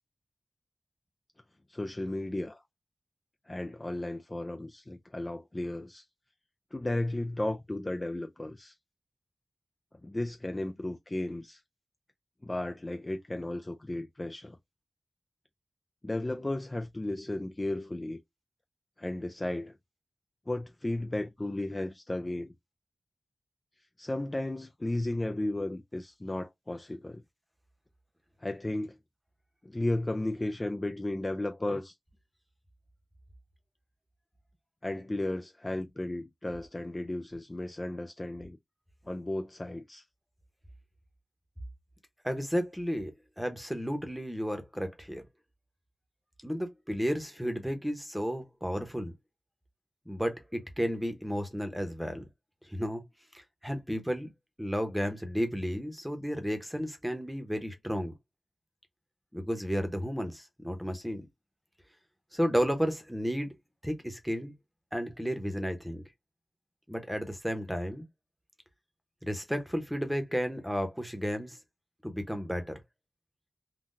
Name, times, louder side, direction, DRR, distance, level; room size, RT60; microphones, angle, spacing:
voice 1, 1.7-2.6 3.5-6.1 6.7-8.8 10.0-11.6 12.4-14.6 16.0-18.2 19.0-19.7 20.5-22.5 24.0-27.2 28.4-29.0 29.6-32.0 34.8-38.6 39.0-40.0, left 1 dB, 25° left, 0.3 m, -34 dB
voice 2, 42.2-43.1 43.4-45.2 46.4-49.1 50.1-52.2 52.7-53.0 53.3-54.3 54.6-58.1 59.3-61.3 62.3-63.5 63.8-64.5 64.9-66.0 66.9-68.1 69.2-71.6 72.0-72.8, equal, 5° right, 0.9 m, -32 dB
3.7 x 2.3 x 2.5 m
wide cardioid pair, 90°, 0 cm